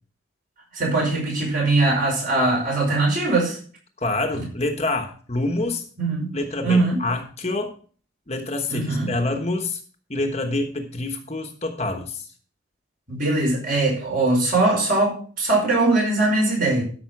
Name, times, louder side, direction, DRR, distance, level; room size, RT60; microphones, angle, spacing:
voice 1, 0.7-3.6 6.0-6.3 6.6-7.0 8.7-9.1 13.1-16.8, right 2 dB, 45° right, -1 dB, 5.2 m, -21 dB
voice 2, 4.0-5.8 6.3-7.7 8.3-9.8 10.1-12.2, left 2 dB, 30° left, 5 dB, 1.2 m, -26 dB
13.0 x 5.7 x 5.9 m, 0.43 s
head